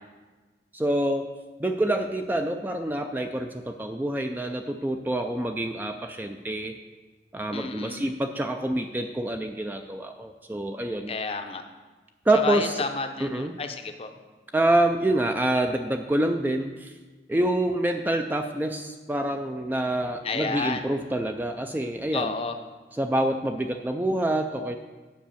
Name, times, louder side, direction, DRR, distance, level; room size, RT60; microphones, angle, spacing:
voice 1, 0.7-1.3 1.6-6.8 7.3-11.1 12.3-12.8 13.2-13.6 14.5-16.9 17.3-22.3 23.0-24.8, right 1 dB, 10° right, 5 dB, 0.3 m, -26 dB
voice 2, 7.5-8.0 11.1-11.6 12.3-14.1 20.2-20.9 22.1-22.5, left 4 dB, 35° left, 7 dB, 0.6 m, -31 dB
7.5 x 5.6 x 7.0 m, 1.3 s
head